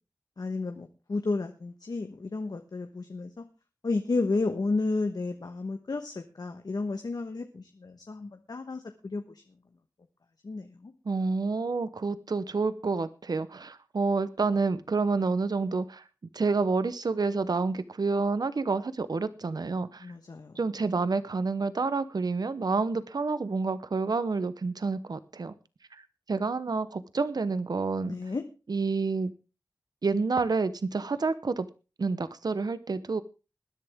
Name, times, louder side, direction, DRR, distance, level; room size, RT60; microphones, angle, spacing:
voice 1, 0.4-3.4 3.8-9.2 10.4-10.9 20.0-20.5 28.0-28.4, left 3 dB, 70° left, 6 dB, 1.2 m, -32 dB
voice 2, 11.1-16.0 16.3-20.1 20.6-25.5 25.9-26.0 26.3-28.2 28.7-29.3 30.0-31.7 32.0-33.2, right 4 dB, 70° right, 14 dB, 0.8 m, -28 dB
20.0 x 10.5 x 3.6 m, 0.32 s
wide cardioid pair, 70°, 7 cm